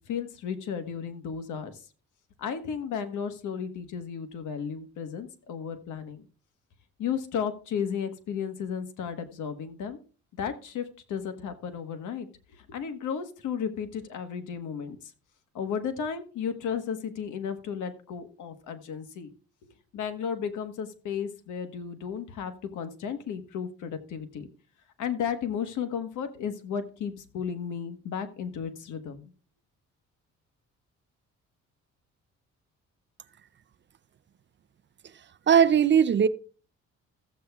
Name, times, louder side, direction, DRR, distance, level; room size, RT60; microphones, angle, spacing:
voice 1, 0.1-1.8 2.4-6.2 7.0-10.0 10.4-15.0 15.5-19.3 19.6-24.5 25.0-29.3, left 7 dB, 75° left, 1.3 m, -34 dB
voice 2, 35.5-36.3, right 8 dB, 40° right, 0.5 m, -19 dB
15.0 x 8.0 x 2.3 m
cardioid pair, 90°, 30 cm